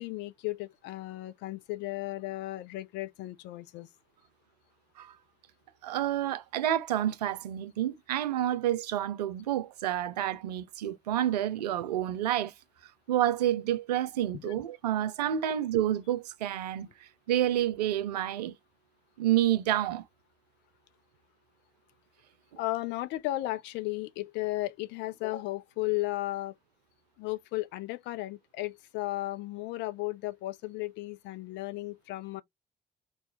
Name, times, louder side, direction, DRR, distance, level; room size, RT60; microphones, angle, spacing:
voice 1, 0.0-3.9 14.3-14.5 22.6-26.5 27.2-32.4, left 18 dB, 60° left, 0.5 m, -35 dB
voice 2, 5.8-12.5 13.1-16.9 17.3-18.5 19.2-20.0, right 12 dB, 80° right, 0.4 m, -29 dB
3.6 x 2.2 x 2.8 m
figure-of-eight pair, 45°, 20 cm